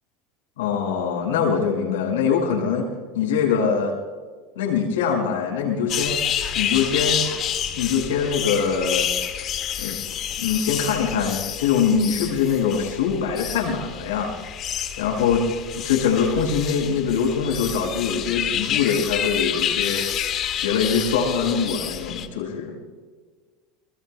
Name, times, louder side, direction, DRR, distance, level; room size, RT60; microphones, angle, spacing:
voice 1, 0.6-2.9 3.1-3.9 4.6-6.2 6.5-7.4 7.7-9.1 9.8-10.0 10.4-14.4 15.0-15.4 15.7-20.0 20.6-22.8, left 6 dB, 85° left, 1 dB, 5.5 m, -23 dB
sound 1, 5.9-22.3, left 10 dB, 50° left, 1.8 m, -28 dB
26.5 x 21.0 x 2.2 m, 1.5 s
hypercardioid pair, 95°, 0 cm